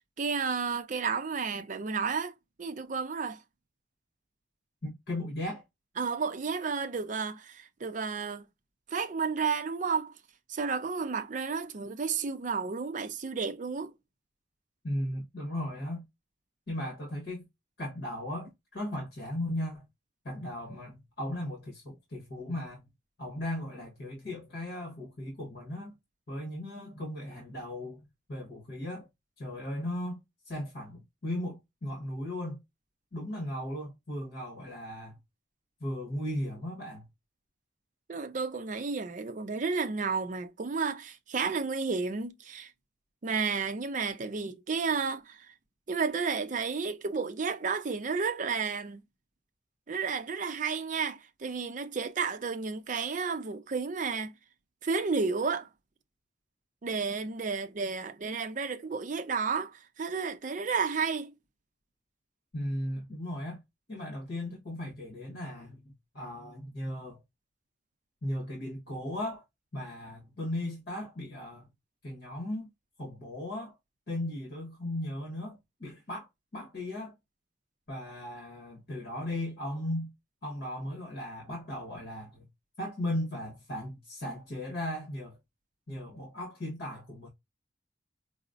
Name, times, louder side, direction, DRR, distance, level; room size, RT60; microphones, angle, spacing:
voice 1, 0.2-3.4 6.0-8.4 8.9-10.2 10.5-13.9 38.1-42.7 43.2-45.5 45.9-49.0 49.9-54.3 54.8-55.7 56.8-61.3, right 5 dB, 45° right, 0.5 m, -32 dB
voice 2, 4.8-5.6 14.8-16.0 16.7-17.4 17.8-19.8 20.2-22.8 23.2-25.9 26.3-28.0 28.3-29.1 29.4-30.2 30.5-32.6 33.1-35.2 35.8-37.1 62.5-63.6 63.9-65.8 66.1-67.2 68.2-69.4 69.7-71.7 72.0-72.7 73.0-73.7 74.1-76.3 76.5-77.1 77.9-80.1 80.4-82.5 82.8-85.4 85.9-87.3, left 1 dB, 55° left, 1.1 m, -36 dB
4.9 x 2.0 x 2.4 m
head